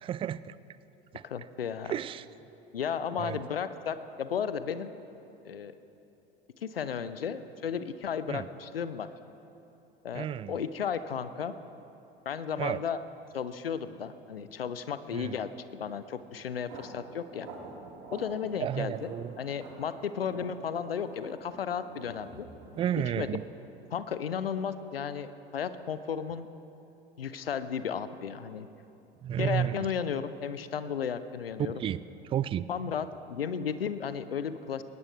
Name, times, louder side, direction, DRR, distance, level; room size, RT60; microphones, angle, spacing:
voice 1, 0.0-0.6 1.1-1.2 1.8-2.2 3.2-3.4 8.3-8.5 10.1-10.6 12.6-12.8 15.1-15.4 18.6-19.3 22.8-23.4 29.2-29.9 31.8-32.0 32.2-32.7, right 10 dB, 20° right, 17 dB, 0.4 m, -32 dB
voice 2, 1.2-2.0 2.7-4.9 5.4-5.7 6.6-9.1 10.0-11.5 12.3-13.0 13.3-17.5 18.1-22.5 23.2-23.3 23.9-26.5 27.2-28.7 29.4-31.8 32.7-34.8, left 7 dB, 80° left, 13 dB, 0.8 m, -34 dB
sound 1, 16.4-23.0, right 3 dB, 50° right, 3.9 m, -48 dB
20.0 x 18.5 x 3.3 m, 2.9 s
figure-of-eight pair, 75°, 29 cm